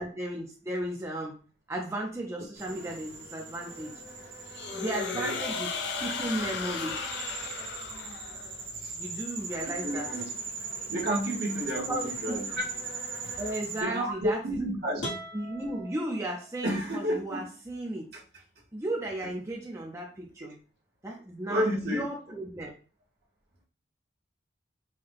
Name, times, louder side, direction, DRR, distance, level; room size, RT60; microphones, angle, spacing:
voice 1, 0.0-1.4 1.7-3.9 4.7-5.7 6.0-7.1 8.9-10.1 11.9-12.4 13.4-14.6 15.3-18.1 18.7-20.6 21.0-22.7, right 1 dB, 15° right, -2 dB, 0.6 m, -35 dB
sound 1, 2.6-13.8, right 4 dB, 75° right, 1.4 m, -39 dB
sound 2, 4.5-8.6, left 5 dB, 60° left, 0.5 m, -35 dB
voice 2, 9.7-10.3 10.9-12.6 13.8-15.0 16.6-17.4 18.1-18.2 20.4-20.5 21.5-22.1, equal, 55° right, -1 dB, 1.2 m, -31 dB
sound 3, 15.0-16.9, equal, 80° left, 1.4 m, -41 dB
5.5 x 2.2 x 3.4 m, 0.39 s
head